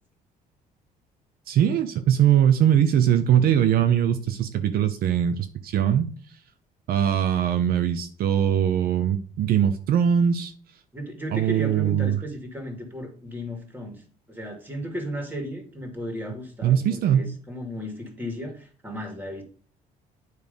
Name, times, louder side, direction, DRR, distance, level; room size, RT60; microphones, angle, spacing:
voice 1, 1.5-6.1 6.9-10.5 11.3-12.2 16.6-17.3, right 9 dB, 65° right, 8 dB, 0.7 m, -21 dB
voice 2, 10.9-14.0 14.3-19.4, equal, 10° right, 3 dB, 2.1 m, -35 dB
9.2 x 3.2 x 5.2 m, 0.44 s
cardioid pair, 110°, 17 cm